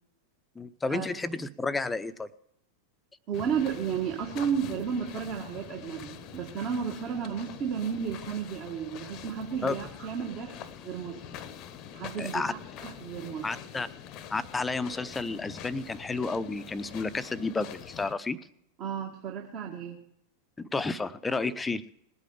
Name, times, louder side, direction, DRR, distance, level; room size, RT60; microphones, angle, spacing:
voice 1, 0.6-2.3 9.6-9.8 12.2-12.5 13.4-13.9 14.3-18.4 20.6-21.8, left 3 dB, 10° left, 14 dB, 0.7 m, -31 dB
sound 1, 3.3-18.1, left 9 dB, 40° left, 0.9 m, -45 dB
voice 2, 3.3-10.6 10.8-11.2 11.9-12.4 12.8-13.5 18.8-20.0, right 7 dB, 35° right, 1 dB, 1.7 m, -33 dB
20.0 x 8.4 x 5.0 m, 0.75 s
figure-of-eight pair, 90°, 0 cm